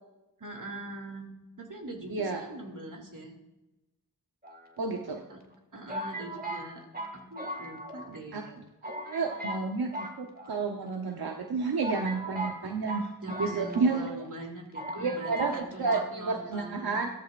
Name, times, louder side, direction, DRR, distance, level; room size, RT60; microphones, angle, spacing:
voice 1, 0.4-3.3 5.3-5.4 5.7-6.9 7.1-8.6 13.2-17.0, right 2 dB, 60° right, 1 dB, 2.6 m, -42 dB
voice 2, 2.1-2.5 4.8-5.2 8.3-8.4 8.8-13.1 13.4-14.3 14.9-17.1, right 4 dB, 90° right, 2 dB, 0.9 m, -31 dB
sound 1, 4.4-5.2 5.9-8.2 8.5-8.6 8.8-9.6 9.9-10.9 11.4-11.5 11.8-14.1 14.4-14.5 14.7-15.6 15.8-16.1, right 1 dB, 25° right, 1.9 m, -38 dB
15.5 x 13.5 x 2.5 m, 1.0 s
wide cardioid pair, 55°, 36 cm